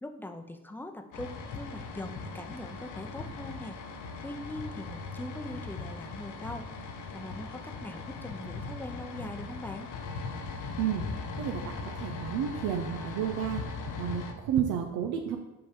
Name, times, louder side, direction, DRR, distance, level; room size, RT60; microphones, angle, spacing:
voice 1, 0.0-3.8 4.2-6.7 7.1-9.9, left 1 dB, 5° left, 6 dB, 0.6 m, -41 dB
sound 1, 1.1-14.3, left 4 dB, 85° left, 0.8 m, -39 dB
voice 2, 11.4-13.6 14.0-15.4, right 9 dB, 90° right, 3 dB, 0.6 m, -31 dB
5.6 x 4.3 x 5.1 m, 0.97 s
cardioid pair, 90°, 30 cm